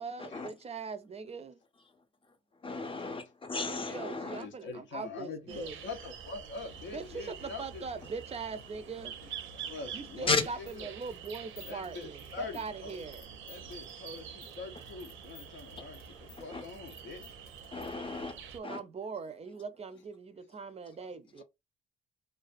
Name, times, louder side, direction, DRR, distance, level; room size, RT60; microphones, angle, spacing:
voice 1, 0.0-1.6 3.6-5.8 6.9-9.1 9.9-13.3 18.5-21.4, right 5 dB, 30° right, 0.4 m, -41 dB
voice 2, 2.6-4.4 10.3-10.4 15.8-15.9 16.5-16.6 17.7-18.3 18.6-18.8, left 4 dB, 25° left, 0.6 m, -33 dB
voice 3, 4.2-8.0 9.2-10.9 11.6-13.0 13.5-17.3 20.5-20.6 21.4-21.5, left 4 dB, 70° left, 0.6 m, -44 dB
sound 1, 5.5-18.6, right 7 dB, 80° right, 0.5 m, -47 dB
sound 2, 10.4-17.9, left 5 dB, 85° left, 0.9 m, -56 dB
2.4 x 2.3 x 2.4 m
cardioid pair, 90°, 20 cm